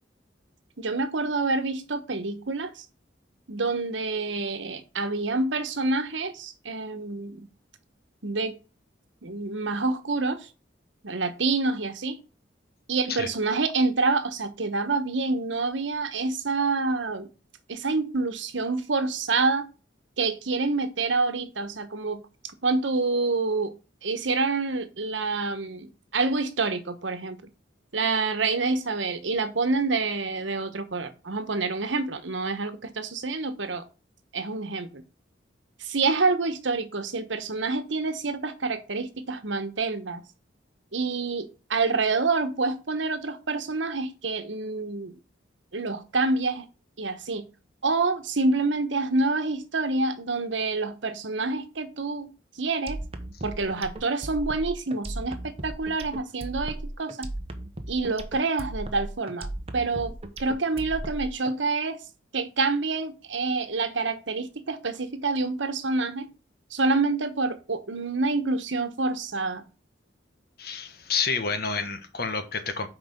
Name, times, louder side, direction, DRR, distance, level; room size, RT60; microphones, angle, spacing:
voice 1, 0.8-2.8 3.5-7.5 8.2-8.5 9.2-10.4 11.0-12.2 12.9-17.3 17.7-19.6 20.2-22.2 22.6-23.7 24.0-27.4 27.9-33.8 34.3-35.0 35.8-40.2 40.9-45.1 45.7-46.7 47.0-47.5 47.8-52.3 52.6-53.0 53.4-57.3 57.9-59.5 59.7-62.0 62.3-66.3 66.7-69.6, right 3 dB, 80° right, 1.1 m, -27 dB
sound 1, 52.9-61.5, right 1 dB, 30° right, 1.0 m, -36 dB
voice 2, 70.6-72.9, left 5 dB, 55° left, 1.3 m, -29 dB
6.0 x 4.9 x 6.7 m
head